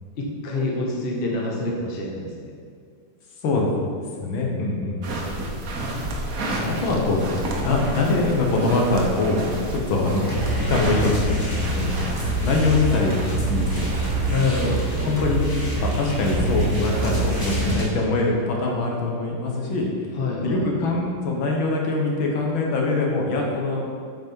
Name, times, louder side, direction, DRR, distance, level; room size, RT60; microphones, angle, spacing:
voice 1, 0.1-2.5 4.8-6.0 14.3-14.8 20.1-20.7, left 2 dB, 40° left, -1 dB, 0.9 m, -27 dB
voice 2, 4.2-5.2 6.5-7.3 7.5-10.3 10.7-12.0 12.4-13.9 14.2-14.4 15.0-15.5 15.8-19.9 20.4-23.8, left 3 dB, 75° left, -1 dB, 1.8 m, -23 dB
sound 1, 5.0-17.7, right 1 dB, 55° right, 1.1 m, -32 dB
sound 2, 10.2-17.8, right 1 dB, 10° left, 1.5 m, -26 dB
8.1 x 5.2 x 4.5 m, 2.1 s
omnidirectional pair, 2.3 m